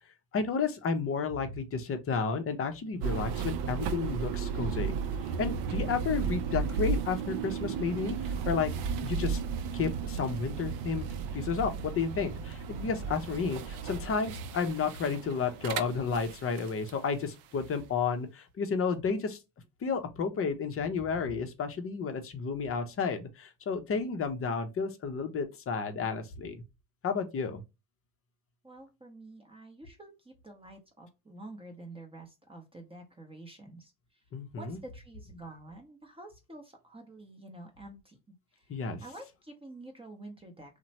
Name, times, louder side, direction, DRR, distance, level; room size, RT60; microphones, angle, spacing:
voice 1, 0.3-5.0 5.4-8.7 9.0-9.4 9.7-11.1 11.3-19.4 19.8-26.6 27.0-27.6 34.3-34.8 38.7-39.0, left 5 dB, 30° left, 0.6 m, -32 dB
sound 1, 3.0-17.0, right 6 dB, 55° right, 0.5 m, -34 dB
voice 2, 28.6-33.9 34.6-38.2 38.6-38.7 39.0-40.8, right 2 dB, 10° right, 0.7 m, -48 dB
2.8 x 2.1 x 2.7 m
supercardioid pair, 85°, 48 cm